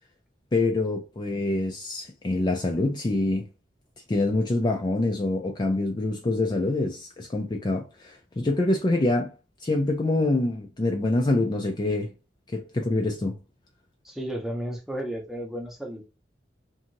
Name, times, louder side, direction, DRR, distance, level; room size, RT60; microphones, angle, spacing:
voice 1, 0.5-3.5 4.1-9.3 9.6-12.1 12.5-13.3, left 2 dB, 25° left, 0.4 m, -25 dB
voice 2, 14.0-16.1, right 1 dB, ahead, 0.7 m, -33 dB
2.7 x 2.5 x 2.8 m
head